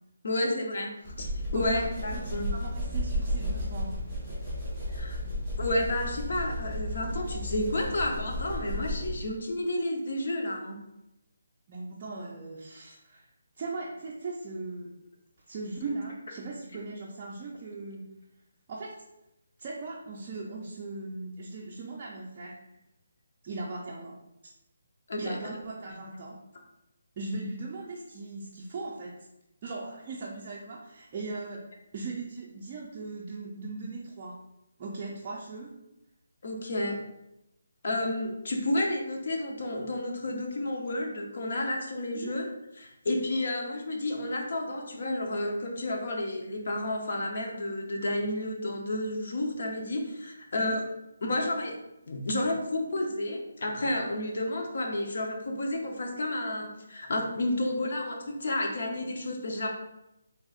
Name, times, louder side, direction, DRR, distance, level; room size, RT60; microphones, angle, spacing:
voice 1, 0.2-2.5 4.9-5.2 5.6-10.8 25.1-25.4 36.4-37.0 37.8-42.4 42.8-50.8 51.2-51.7 52.1-59.7, left 1 dB, 55° left, 1 dB, 0.7 m, -31 dB
sound 1, 1.0-9.3, left 1 dB, 5° left, 1.0 m, -33 dB
voice 2, 1.5-1.9 2.1-2.2 2.5-4.0 11.7-13.3 13.6-15.0 15.5-18.1 18.7-19.0 19.6-22.6 23.4-24.1 25.2-26.4 27.2-29.1 29.6-31.6 31.9-34.3 34.8-35.8 42.1-42.3 50.6-50.9, right 3 dB, 25° right, -5 dB, 0.4 m, -38 dB
3.9 x 3.5 x 2.4 m, 0.88 s
hypercardioid pair, 170°, 0 cm